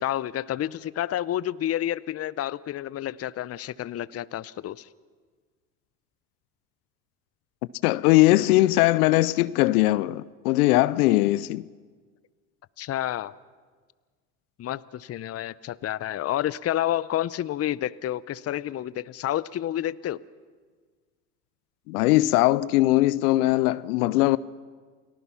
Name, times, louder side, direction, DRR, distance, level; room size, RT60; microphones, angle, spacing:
voice 1, 0.0-4.9 12.8-13.3 14.6-20.2, left 12 dB, 35° left, 0.7 m, -29 dB
voice 2, 7.8-11.7 21.9-24.4, left 18 dB, 80° left, 0.7 m, -20 dB
29.0 x 19.0 x 5.8 m
hypercardioid pair, 75°, 44 cm